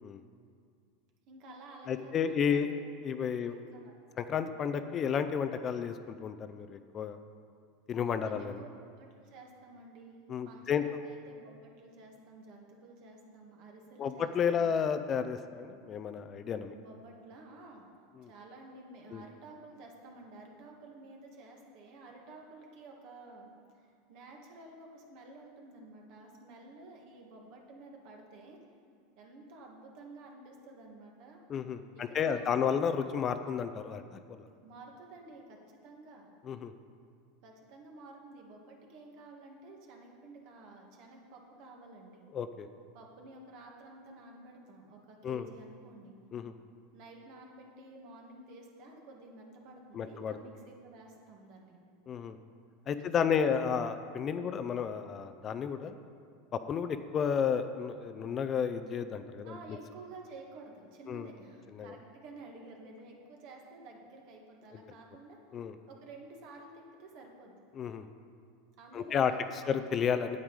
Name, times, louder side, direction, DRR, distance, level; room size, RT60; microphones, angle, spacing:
voice 1, 1.3-2.7 3.4-3.9 8.2-10.2 10.4-14.7 16.7-17.9 18.2-28.6 29.2-31.4 31.9-32.8 34.6-36.3 37.4-42.3 42.9-46.2 46.9-51.8 53.0-53.6 54.3-54.6 59.4-67.5 68.8-69.7, right 2 dB, 55° right, 1 dB, 1.9 m, -52 dB
voice 2, 1.9-2.7 3.0-3.5 4.2-7.2 7.9-8.6 10.3-10.8 14.0-16.7 19.1-19.2 31.5-34.4 36.5-36.7 42.3-42.7 45.2-45.5 46.3-46.5 49.9-50.4 52.1-52.4 52.9-56.0 56.5-59.5 61.1-61.3 61.8-61.9 65.5-65.7 67.8-68.1 68.9-69.3 69.7-70.4, left 7 dB, 30° left, 10 dB, 0.4 m, -32 dB
8.9 x 8.7 x 4.8 m, 2.3 s
supercardioid pair, 130°, 0 cm